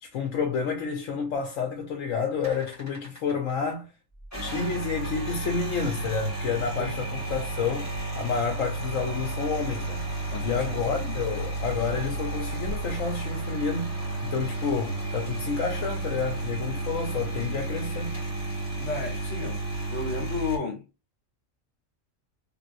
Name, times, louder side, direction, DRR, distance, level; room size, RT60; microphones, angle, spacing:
voice 1, 0.0-3.9 4.4-10.1 10.4-18.2, left 5 dB, 80° left, 1.0 m, -30 dB
sound 1, 2.4-3.5 4.2-20.6, right 2 dB, 15° left, 1.5 m, -32 dB
voice 2, 10.3-10.7 18.8-19.6 19.9-20.8, left 4 dB, 60° left, 1.3 m, -32 dB
3.3 x 2.8 x 2.6 m
omnidirectional pair, 1.3 m